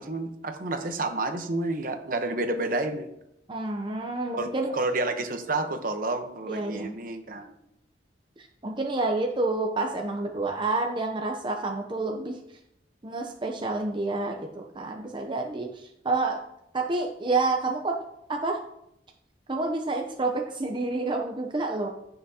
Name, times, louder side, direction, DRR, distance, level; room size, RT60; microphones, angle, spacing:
voice 1, 0.0-3.1 4.4-7.5, right 2 dB, 50° right, 6 dB, 1.0 m, -30 dB
voice 2, 3.5-4.7 6.5-7.0 8.4-12.4 13.0-16.4 16.7-18.6 19.5-21.9, right 3 dB, 25° right, 2 dB, 0.7 m, -29 dB
15.0 x 5.8 x 2.9 m, 0.81 s
head